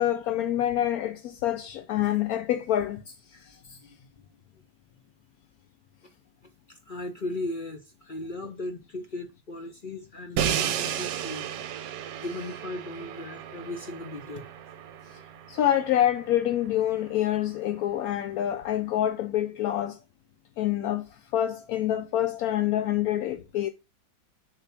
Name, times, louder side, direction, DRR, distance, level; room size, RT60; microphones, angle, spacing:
voice 1, 0.0-3.0 15.5-20.0 20.6-21.0 21.3-23.7, left 12 dB, 75° left, 0.8 m, -26 dB
voice 2, 3.3-4.3 6.7-11.5 12.2-14.5, left 2 dB, 55° left, 0.5 m, -37 dB
Crash cymbal, 10.4-16.3, right 9 dB, 70° right, 1.2 m, -33 dB
6.9 x 3.5 x 5.8 m
omnidirectional pair, 2.0 m